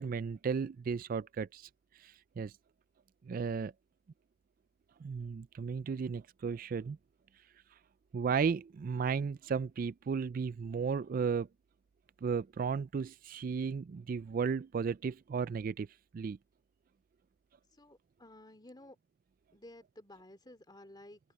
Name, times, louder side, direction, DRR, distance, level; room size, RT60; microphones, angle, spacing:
voice 1, 0.0-1.7 2.0-2.5 3.3-3.7 5.0-7.0 8.1-11.5 12.2-15.9 16.1-16.4, right 5 dB, 50° right, 0.3 m, -34 dB
voice 2, 17.8-19.0 19.5-21.2, left 1 dB, 25° left, 2.8 m, -54 dB
open air
head